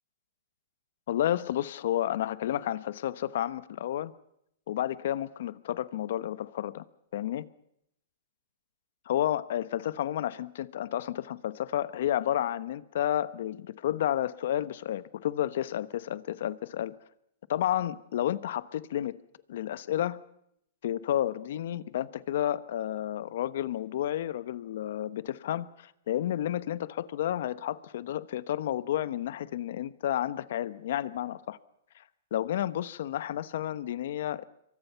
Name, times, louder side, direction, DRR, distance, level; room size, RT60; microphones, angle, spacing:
voice 1, 1.1-4.1 4.7-6.8 7.1-7.5 9.0-16.9 17.5-19.2 19.5-20.2 20.8-31.6 31.9-32.0 32.3-34.4, left 11 dB, 65° left, 1.1 m, -31 dB
27.0 x 23.5 x 5.8 m
hypercardioid pair, 155°, 0 cm